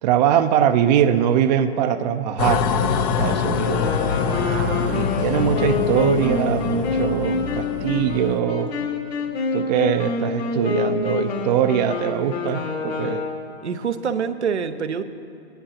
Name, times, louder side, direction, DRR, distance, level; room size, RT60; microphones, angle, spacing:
voice 1, 0.0-3.8 4.9-8.7 9.5-13.3, right 9 dB, 40° right, 9 dB, 0.5 m, -22 dB
sound 1, 2.4-8.4, left 7 dB, 30° left, 0.5 m, -25 dB
Wind instrument woodwind instrument, 3.7-13.6, left 4 dB, 70° left, 2.5 m, -27 dB
voice 2, 4.3-5.9 13.6-15.0, right 6 dB, 85° right, 8 dB, 0.7 m, -28 dB
20.0 x 10.5 x 2.8 m, 2.7 s
hypercardioid pair, 120°, 33 cm